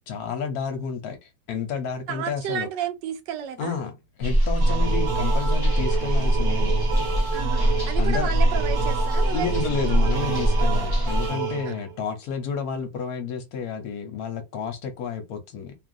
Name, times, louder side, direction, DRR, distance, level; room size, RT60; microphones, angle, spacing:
voice 1, 0.1-2.7 3.6-6.7 7.6-8.3 9.3-15.7, left 6 dB, 65° left, 1.1 m, -31 dB
voice 2, 2.1-3.7 7.3-10.2 11.7-11.8, right 8 dB, 85° right, 1.3 m, -32 dB
sound 1, 4.2-11.3, right 1 dB, 30° left, 0.4 m, -23 dB
sound 2, 4.6-12.0, right 7 dB, 60° right, 1.4 m, -30 dB
3.0 x 2.3 x 2.5 m
omnidirectional pair, 1.9 m